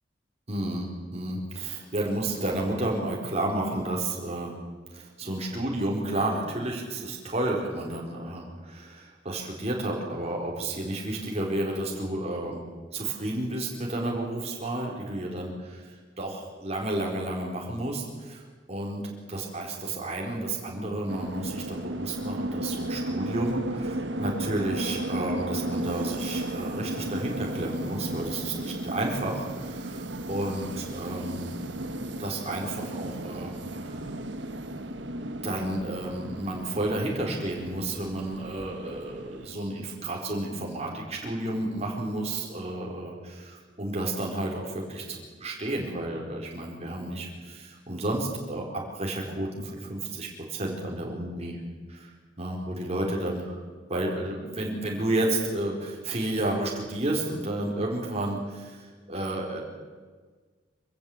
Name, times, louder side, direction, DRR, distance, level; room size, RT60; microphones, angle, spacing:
voice 1, 0.5-4.6 4.9-12.6 12.9-18.4 18.7-19.0 19.3-31.7 32.0-34.1 35.4-48.6 48.9-51.6 51.9-53.5 53.9-59.6, right 1 dB, 35° right, -1 dB, 4.3 m, -31 dB
sound 1, 21.1-39.5, right 1 dB, 75° right, 1.5 m, -34 dB
25.5 x 15.5 x 8.6 m, 1.5 s
head